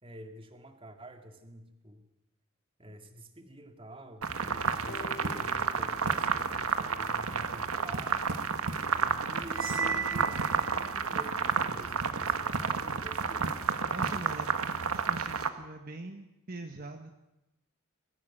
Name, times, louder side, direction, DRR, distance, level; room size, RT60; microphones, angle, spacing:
voice 1, 0.0-2.1 2.8-8.2 8.9-13.7, equal, 25° right, 6 dB, 2.1 m, -48 dB
sound 1, 4.2-15.5, right 5 dB, 85° right, 1.5 m, -31 dB
sound 2, 4.9-8.7 9.6-9.7, left 4 dB, 40° left, 2.2 m, -50 dB
Cymbal, 9.5-10.9, right 5 dB, 65° right, 1.5 m, -35 dB
voice 2, 12.6-13.1 13.9-14.6 14.8-17.1, right 2 dB, 45° right, 4 dB, 1.4 m, -43 dB
22.5 x 15.5 x 9.1 m, 0.92 s
head